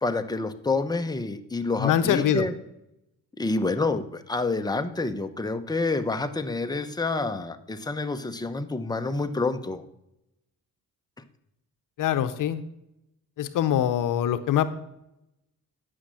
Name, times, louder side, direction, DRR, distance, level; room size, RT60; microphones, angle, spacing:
voice 1, 0.0-2.5 3.4-9.8, left 3 dB, 10° left, 8 dB, 0.9 m, -28 dB
voice 2, 1.8-2.5 12.0-12.6 13.4-14.7, left 10 dB, 75° left, 11 dB, 0.7 m, -24 dB
10.0 x 6.4 x 7.6 m, 0.84 s
cardioid pair, 75°, 32 cm